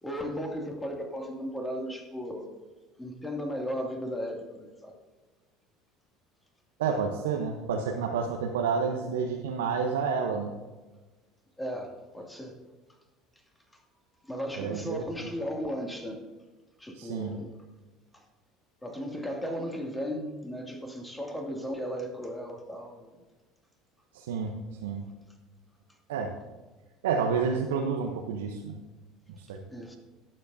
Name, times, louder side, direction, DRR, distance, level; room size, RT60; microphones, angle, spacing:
voice 1, 0.0-2.5 3.0-5.0 11.6-12.6 13.7-13.8 14.2-16.2 16.8-17.6 18.1-18.3 18.8-23.2 29.7-30.0, equal, 10° left, 1 dB, 2.3 m, -36 dB
voice 2, 6.8-10.5 14.6-15.3 17.0-17.3 24.1-24.5 24.8-25.0 26.1-26.3 27.0-28.8 29.3-29.6, right 5 dB, 75° right, 2 dB, 0.8 m, -30 dB
18.0 x 7.6 x 2.7 m, 1.2 s
hypercardioid pair, 65°, 0 cm